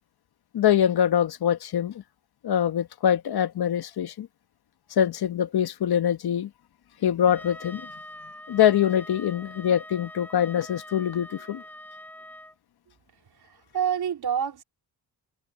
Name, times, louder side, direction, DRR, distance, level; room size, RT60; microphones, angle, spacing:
voice 1, 0.5-2.0 2.4-4.3 5.0-6.5 7.0-7.9 8.5-11.6, left 9 dB, 65° left, 1.2 m, -24 dB
Trumpet, 7.3-12.6, equal, 5° left, 6.3 m, -44 dB
voice 2, 13.5-14.6, right 8 dB, 65° right, 3.7 m, -27 dB
cardioid pair, 95°, 41 cm